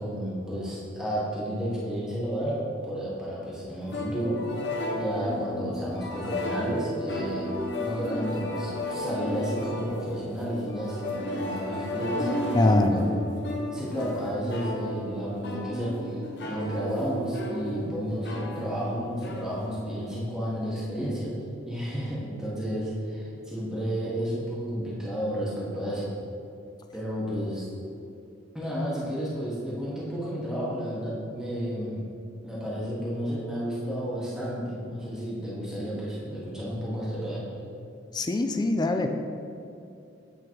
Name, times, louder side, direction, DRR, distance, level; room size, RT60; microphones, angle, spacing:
voice 1, 0.0-4.5 4.9-7.5 7.8-12.4 12.9-13.2 13.7-21.3 21.7-26.1 26.9-27.7 28.5-32.1 32.4-37.5, equal, 5° right, -8 dB, 1.3 m, -32 dB
sound 1, 3.8-20.2, left 1 dB, 60° left, 0.8 m, -34 dB
voice 2, 12.5-13.1 38.1-39.1, left 2 dB, 20° left, 6 dB, 0.4 m, -23 dB
8.5 x 3.2 x 4.5 m, 2.6 s
head